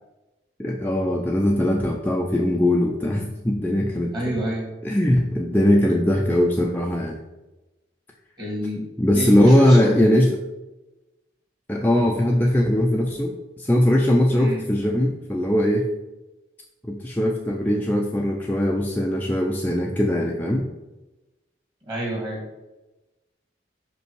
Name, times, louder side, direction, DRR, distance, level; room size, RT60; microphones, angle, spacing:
voice 1, 0.6-4.3 4.8-7.2 9.0-10.3 11.7-15.9 16.9-20.6, left 1 dB, 10° left, -1 dB, 0.5 m, -20 dB
voice 2, 4.1-4.7 8.4-8.9 9.1-10.1 14.3-14.6 21.9-22.4, equal, 20° right, -2 dB, 2.1 m, -28 dB
5.5 x 5.4 x 4.6 m, 1.0 s
head